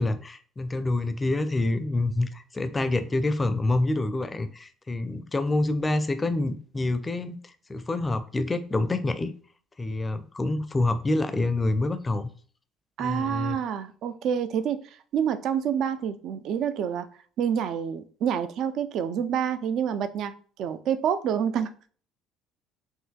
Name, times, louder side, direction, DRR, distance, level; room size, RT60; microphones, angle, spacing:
voice 1, 0.0-7.4 7.7-9.3 9.8-12.3 13.0-13.6, left 2 dB, 20° left, 10 dB, 0.5 m, -27 dB
voice 2, 13.0-14.8 15.1-17.1 17.4-20.3 20.6-21.7, right 8 dB, 55° right, 11 dB, 0.3 m, -27 dB
5.5 x 2.7 x 2.2 m, 0.43 s
figure-of-eight pair, 55°, 0 cm